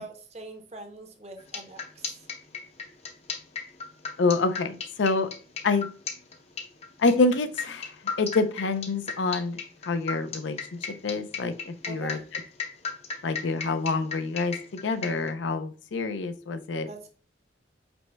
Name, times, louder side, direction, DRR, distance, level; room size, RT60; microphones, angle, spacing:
voice 1, 0.0-2.2 11.9-12.2 16.9-17.1, right 2 dB, 35° right, 6 dB, 0.7 m, -43 dB
sound 1, 1.4-15.3, left 5 dB, 35° left, 0.5 m, -35 dB
voice 2, 4.2-5.3 5.6-5.9 7.0-7.9 8.2-9.6 9.9-10.6 11.0-12.2 13.2-14.5 14.8-16.9, left 3 dB, 85° left, 11 dB, 0.5 m, -26 dB
5.2 x 2.1 x 4.5 m, 0.38 s
head